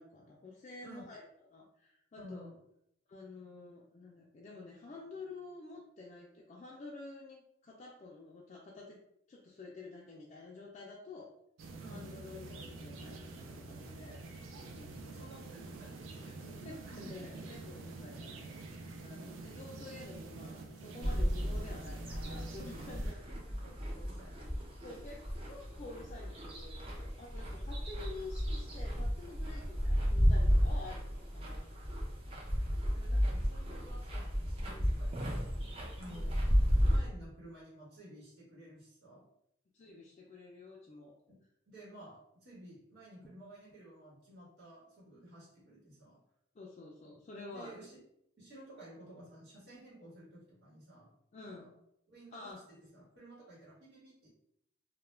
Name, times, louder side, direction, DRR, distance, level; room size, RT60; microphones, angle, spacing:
voice 1, 0.0-2.5 3.1-9.0 9.3-11.3 11.9-14.2 14.6-15.2 16.4-23.2 23.6-23.7 24.8-31.7 33.0-33.2 34.7-34.9 36.1-36.3 39.7-41.2 46.5-47.8 51.3-51.7 52.3-52.6, left 3 dB, 35° left, -3 dB, 0.3 m, -50 dB
voice 2, 0.8-1.2 2.2-2.6 11.8-12.1 15.1-16.4 16.7-16.9 19.1-19.5 22.9-24.4 24.9-25.1 32.9-36.5 36.9-39.3 41.3-41.4 41.7-46.2 47.5-48.0 48.4-51.2 51.4-51.7 52.1-54.3, right 1 dB, 65° right, -8 dB, 1.1 m, -54 dB
sound 1, 11.6-23.1, right 3 dB, 80° right, 0.4 m, -47 dB
sound 2, 21.0-37.0, equal, 30° right, 0.5 m, -33 dB
2.2 x 2.1 x 3.1 m, 0.76 s
head